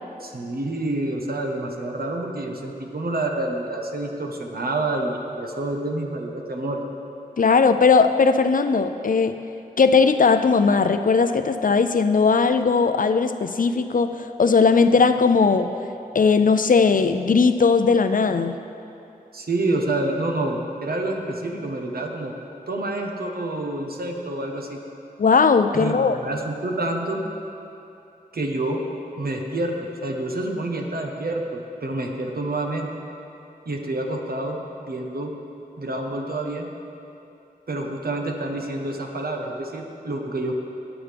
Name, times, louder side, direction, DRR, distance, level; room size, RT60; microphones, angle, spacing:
voice 1, 0.2-6.8 19.3-22.3 22.7-24.8 25.7-27.2 28.3-28.8 29.2-29.8 30.0-32.9 33.7-35.3 35.8-36.7 37.7-40.5, right 2 dB, 80° right, 2 dB, 1.1 m, -28 dB
voice 2, 7.4-9.4 9.8-15.7 16.1-18.6 25.2-26.2, left 5 dB, 60° left, 9 dB, 0.5 m, -18 dB
19.0 x 7.1 x 3.5 m, 2.8 s
wide cardioid pair, 60°, 16 cm